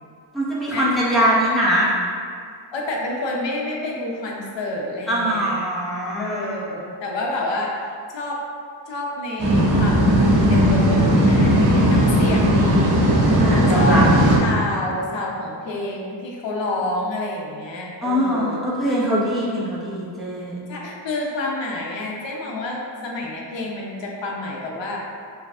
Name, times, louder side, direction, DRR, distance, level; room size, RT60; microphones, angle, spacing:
voice 1, 0.3-1.9 5.1-6.6 13.4-14.0 18.0-20.6, equal, ahead, -9 dB, 0.9 m, -22 dB
voice 2, 2.7-5.6 6.2-8.4 8.9-10.2 10.5-13.2 13.7-14.1 14.4-18.6 20.7-25.0, left 2 dB, 70° left, -2 dB, 0.9 m, -29 dB
sound 1, 9.4-14.4, equal, 70° right, 1.4 m, -16 dB
6.1 x 2.4 x 3.6 m, 2.2 s
wide cardioid pair, 150°, 46 cm